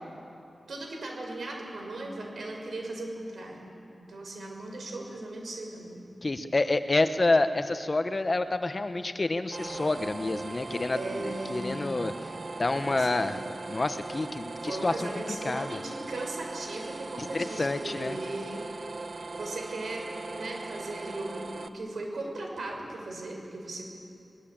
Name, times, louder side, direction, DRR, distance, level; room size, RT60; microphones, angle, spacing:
voice 1, 0.7-3.7 4.0-6.1 10.9-12.0 12.8-13.4 14.6-18.6 19.4-20.0 20.3-24.0, right 2 dB, 80° right, 1 dB, 5.8 m, -38 dB
voice 2, 6.2-12.3 12.6-13.4 13.7-15.8 17.2-18.2, left 2 dB, 35° left, 9 dB, 1.1 m, -28 dB
sound 1, 9.5-21.7, right 3 dB, 50° right, 1.1 m, -39 dB
23.0 x 21.0 x 8.8 m, 2.6 s
wide cardioid pair, 125°, 0 cm